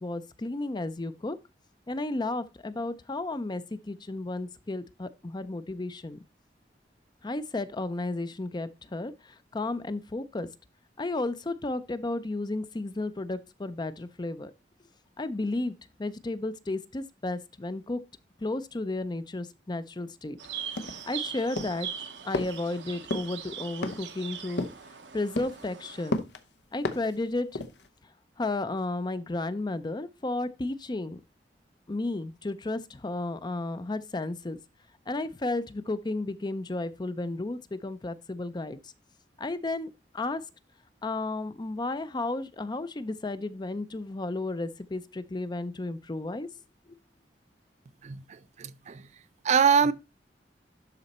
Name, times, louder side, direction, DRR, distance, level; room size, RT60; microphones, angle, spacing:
voice 1, 0.0-1.4 1.9-6.2 7.2-10.5 11.0-14.5 15.2-18.0 18.4-20.4 21.1-24.7 25.1-26.2 26.7-27.5 28.4-31.2 31.9-34.6 35.1-38.8 39.4-40.4 41.0-46.5, left 2 dB, 25° left, 0.5 m, -33 dB
sound 1, 20.4-26.1, right 8 dB, 85° right, 1.0 m, -40 dB
sound 2, 20.8-21.2 21.6-21.9 22.3-22.6 23.1-23.3 23.8-24.1 24.6-24.9 25.4-25.6 26.1-26.4 26.8-27.2 27.5-27.9, left 2 dB, 75° left, 0.8 m, -32 dB
voice 2, 48.0-49.0 49.4-49.9, right 6 dB, 40° right, 0.4 m, -24 dB
12.0 x 4.1 x 4.2 m
head